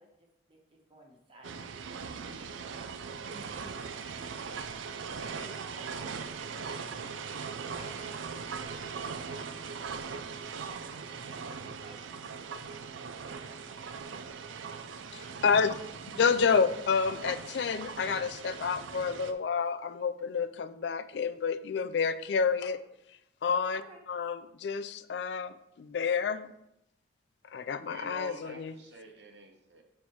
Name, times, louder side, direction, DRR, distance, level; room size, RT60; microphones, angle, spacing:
voice 1, 0.0-1.8 2.2-4.7 5.2-9.6 10.4-12.9 13.2-15.4 15.9-16.4 23.7-24.0, right 1 dB, 30° right, 0 dB, 1.4 m, -56 dB
sound 1, 1.4-19.3, right 5 dB, 90° right, 0.5 m, -40 dB
voice 2, 15.1-15.8 16.2-22.8 23.4-23.8 24.1-26.5 27.5-28.7, left 5 dB, 60° left, 11 dB, 0.4 m, -29 dB
voice 3, 27.8-29.8, right 2 dB, 60° right, 3 dB, 1.0 m, -48 dB
7.1 x 4.4 x 4.6 m, 0.81 s
head